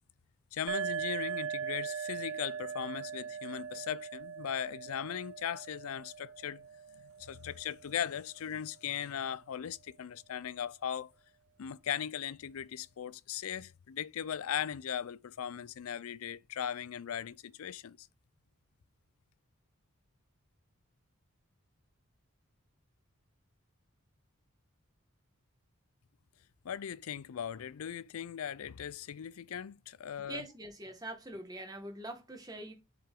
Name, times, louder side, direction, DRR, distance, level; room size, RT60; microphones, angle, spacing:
voice 1, 0.5-6.6 6.9-11.1 11.6-18.1 26.6-30.5, left 9 dB, 80° left, 0.4 m, -38 dB
sound 1, 0.7-8.2, right 7 dB, 55° right, 0.5 m, -40 dB
voice 2, 30.3-32.7, right 1 dB, 15° right, 1.6 m, -43 dB
7.4 x 5.1 x 3.7 m
head